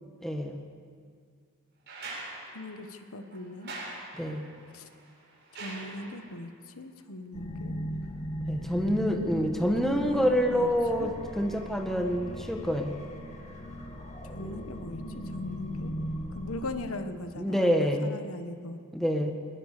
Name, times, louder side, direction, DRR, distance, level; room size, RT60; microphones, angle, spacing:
voice 1, 0.2-0.6 4.1-4.5 8.5-13.0 17.3-18.2 18.9-19.3, equal, ahead, 3 dB, 1.6 m, -27 dB
sound 1, 1.9-6.5 8.0-8.1, right 2 dB, 50° right, 7.7 m, -43 dB
voice 2, 2.5-3.7 4.7-4.8 5.6-7.9 9.8-11.2 14.3-15.0 15.4-15.9 16.3-17.7 18.0-18.8, left 1 dB, 85° left, 8 dB, 1.3 m, -40 dB
sound 2, 7.3-16.7, equal, 30° left, 2.1 m, -38 dB
21.5 x 20.5 x 6.8 m, 2.1 s
head